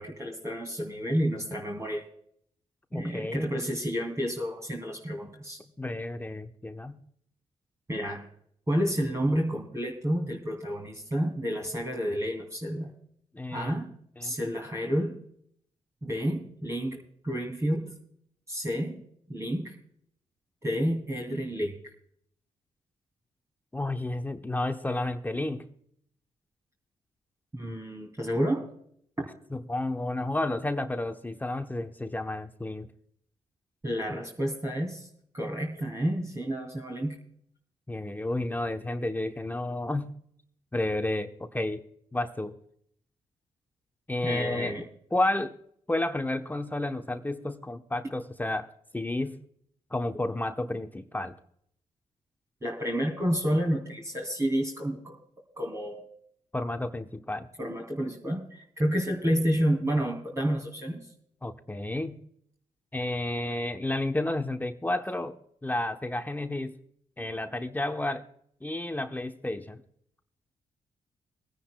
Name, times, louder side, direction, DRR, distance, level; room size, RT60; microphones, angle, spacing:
voice 1, 0.0-2.0 2.9-5.6 7.9-8.3 8.7-12.9 13.5-13.9 14.2-15.2 16.0-17.9 18.5-19.0 19.3-19.7 20.6-21.8 27.5-28.6 29.2-29.3 33.8-35.1 35.3-37.2 44.2-44.8 52.6-55.2 55.6-56.1 57.6-61.0, equal, 25° right, -1 dB, 2.7 m, -30 dB
voice 2, 2.9-3.5 5.8-7.0 13.3-13.7 14.2-14.4 23.7-25.7 29.5-32.9 37.9-40.1 40.7-41.8 42.1-42.5 44.1-44.7 45.1-45.5 45.9-49.4 49.9-51.4 56.5-57.5 61.4-62.2 62.9-65.4 65.6-66.7 67.2-68.2 68.6-69.8, left 2 dB, 15° left, 7 dB, 0.9 m, -31 dB
24.0 x 10.0 x 2.2 m, 0.67 s
supercardioid pair, 55°, 13 cm